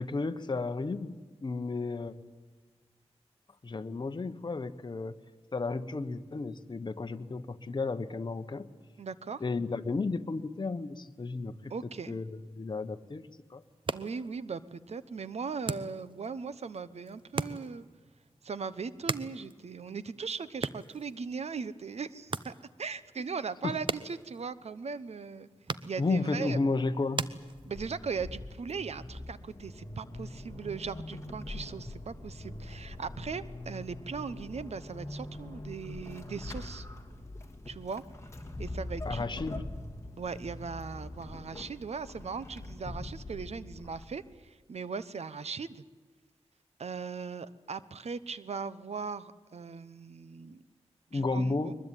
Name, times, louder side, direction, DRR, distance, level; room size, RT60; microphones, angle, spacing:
voice 1, 0.0-2.1 3.6-5.2 5.5-8.7 9.4-11.7 12.1-13.6 23.6-23.8 26.0-27.3 39.0-39.7 51.1-51.7, left 3 dB, 40° left, 8 dB, 1.2 m, -33 dB
voice 2, 9.0-9.4 11.7-12.2 13.9-17.8 18.4-25.5 25.8-26.6 27.7-36.9 37.7-38.0 38.6-39.6 40.2-45.8 46.8-50.6 51.1-51.7, right 5 dB, 70° right, 15 dB, 1.0 m, -39 dB
sound 1, 13.6-28.1, right 4 dB, 45° right, 0.9 m, -41 dB
Vehicle / Accelerating revving vroom / Squeak, 27.5-44.4, left 1 dB, 25° left, 2.7 m, -43 dB
22.0 x 21.0 x 9.1 m, 1.4 s
wide cardioid pair, 90°, 11 cm